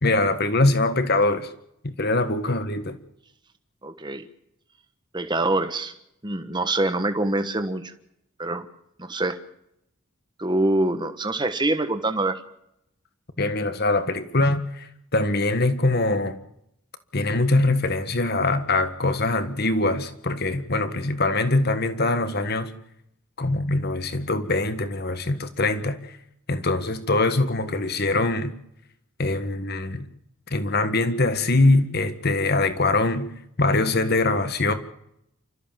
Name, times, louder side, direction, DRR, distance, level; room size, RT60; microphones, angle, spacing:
voice 1, 0.0-1.5 1.8-3.0 13.4-16.4 17.1-22.7 23.4-26.1 26.5-28.5 29.2-30.1 30.5-34.7, left 2 dB, 45° left, 1.6 m, -23 dB
voice 2, 3.8-4.2 5.1-5.9 6.2-7.9 8.4-8.6 9.0-9.4 10.4-12.4, right 2 dB, 20° right, 1.3 m, -25 dB
28.0 x 14.0 x 7.5 m
head